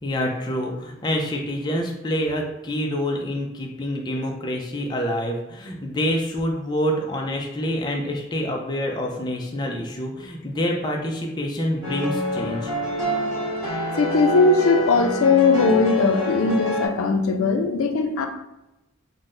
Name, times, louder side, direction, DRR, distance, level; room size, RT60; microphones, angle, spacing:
voice 1, 0.0-12.7, equal, 20° left, 1 dB, 0.4 m, -27 dB
sound 1, 11.8-16.9, left 1 dB, 15° right, 1.1 m, -26 dB
voice 2, 14.0-18.3, left 4 dB, 85° left, 6 dB, 0.4 m, -19 dB
3.8 x 2.1 x 3.7 m, 0.93 s
head